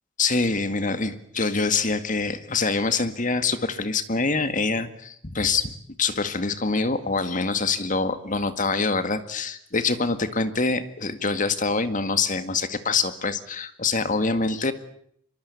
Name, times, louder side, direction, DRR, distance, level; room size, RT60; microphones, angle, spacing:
voice 1, 0.2-5.7 6.0-14.7, left 4 dB, 40° left, 10 dB, 2.0 m, -25 dB
24.5 x 23.0 x 8.4 m, 0.68 s
head